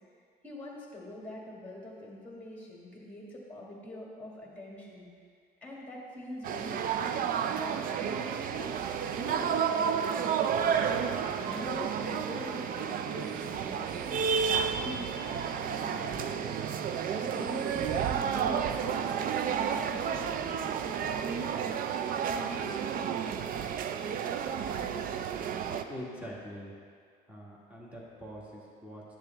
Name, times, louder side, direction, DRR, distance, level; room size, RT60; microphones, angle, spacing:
voice 1, 0.4-5.1 5.6-10.8 11.2-14.2 14.5-16.7 17.1-21.7 22.3-23.0, left 1 dB, 10° left, -3 dB, 2.1 m, -44 dB
sound 1, 6.4-25.8, right 7 dB, 55° right, 0.5 m, -31 dB
voice 2, 25.1-26.7 27.3-29.0, equal, 10° right, -4 dB, 1.7 m, -45 dB
10.0 x 6.7 x 3.4 m, 2.2 s
cardioid pair, 110°, 17 cm